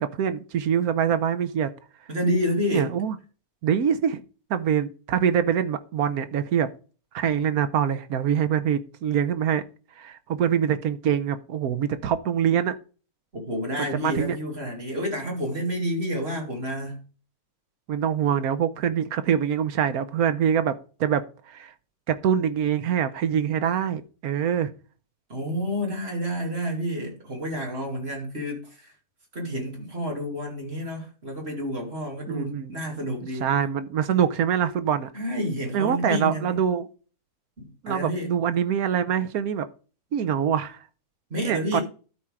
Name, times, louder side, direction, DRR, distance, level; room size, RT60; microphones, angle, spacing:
voice 1, 0.0-1.7 2.7-3.2 3.6-4.2 4.5-6.7 7.1-9.6 10.0-12.8 13.8-14.4 17.9-21.7 22.1-24.7 32.3-32.7 33.4-35.1 35.7-36.9 37.8-39.7 40.1-40.8 41.4-41.8, right 8 dB, 75° right, 1.3 m, -24 dB
voice 2, 2.1-2.9 13.3-17.0 25.3-28.9 29.3-33.5 35.1-36.6 37.6-38.3 41.3-41.8, equal, 40° right, 2.8 m, -29 dB
13.0 x 4.4 x 3.7 m
omnidirectional pair, 1.6 m